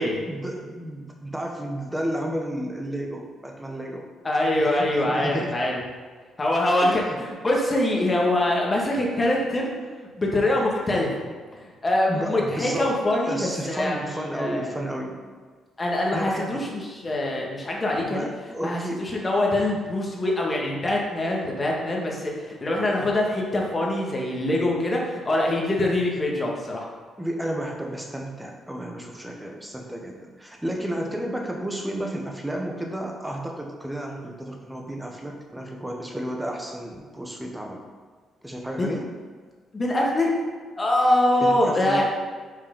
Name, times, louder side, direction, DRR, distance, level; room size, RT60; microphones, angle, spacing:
voice 1, 0.0-4.1 4.6-5.5 6.8-7.2 12.1-13.0 13.3-15.2 16.1-16.7 18.1-19.1 25.9-26.1 27.2-37.8 38.4-39.1 41.4-42.0, right 1 dB, 5° right, 2 dB, 1.1 m, -32 dB
voice 2, 4.2-5.8 6.4-9.7 10.2-11.1 11.8-14.6 15.8-18.3 18.6-26.9 38.8-38.9 39.7-40.3 40.8-42.0, left 1 dB, 25° left, -2 dB, 1.6 m, -24 dB
5.7 x 4.7 x 5.3 m, 1.5 s
cardioid pair, 90°, 0 cm